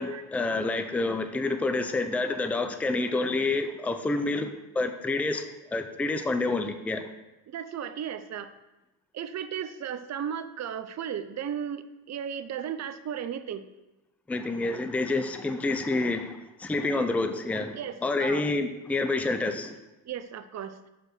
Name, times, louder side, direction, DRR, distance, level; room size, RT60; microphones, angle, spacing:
voice 1, 0.0-5.4 5.7-7.0 14.3-19.7, left 2 dB, 5° left, 8 dB, 0.5 m, -28 dB
voice 2, 7.5-8.5 9.1-13.6 17.7-18.4 20.0-20.8, right 8 dB, 35° right, 10 dB, 0.7 m, -35 dB
6.9 x 4.8 x 6.3 m, 0.99 s
supercardioid pair, 90°, 49 cm